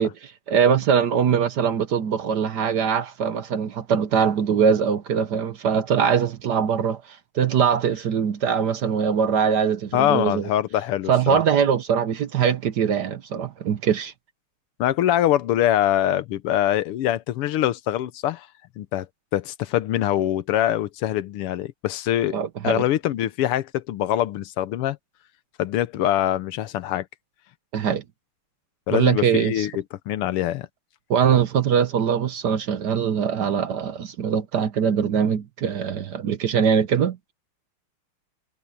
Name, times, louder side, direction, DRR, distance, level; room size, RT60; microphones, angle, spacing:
voice 1, 0.0-10.5 11.1-14.1 22.3-22.8 27.7-28.0 28.9-29.7 31.1-37.3, right 7 dB, 60° right, 1.3 m, -22 dB
voice 2, 9.9-11.4 14.8-18.5 18.8-19.1 19.3-22.4 22.6-25.0 25.6-27.1 28.9-29.7 30.1-30.7, left 12 dB, 85° left, 1.8 m, -23 dB
omnidirectional pair, 2.4 m